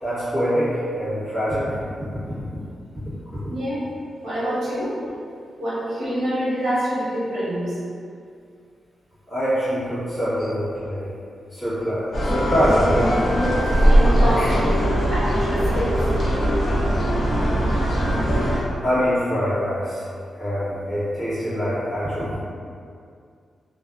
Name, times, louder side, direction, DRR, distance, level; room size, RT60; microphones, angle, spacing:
voice 1, 0.0-1.8 9.3-11.1 11.5-13.2 13.7-13.9 14.3-14.5 18.8-22.4, equal, 5° left, -16 dB, 1.2 m, -24 dB
voice 2, 3.5-3.8 4.2-4.9 5.6-7.8 13.9-16.0, equal, 60° right, -10 dB, 1.0 m, -26 dB
sound 1, 12.1-18.6, equal, 45° left, 0.6 m, -20 dB
2.4 x 2.2 x 2.4 m, 2.3 s
wide cardioid pair, 155°, 0 cm